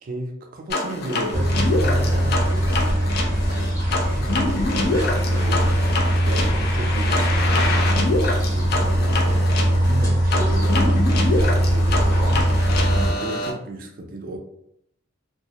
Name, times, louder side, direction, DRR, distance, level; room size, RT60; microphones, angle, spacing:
voice 1, 0.0-2.7 3.0-5.8 6.2-12.5 12.9-14.4, right 1 dB, 45° right, 3 dB, 0.4 m, -34 dB
sound 1, 0.7-13.5, left 2 dB, 55° left, 0.4 m, -26 dB
sound 2, 1.3-13.1, equal, 20° left, 0.9 m, -21 dB
2.2 x 2.0 x 2.7 m, 0.74 s
head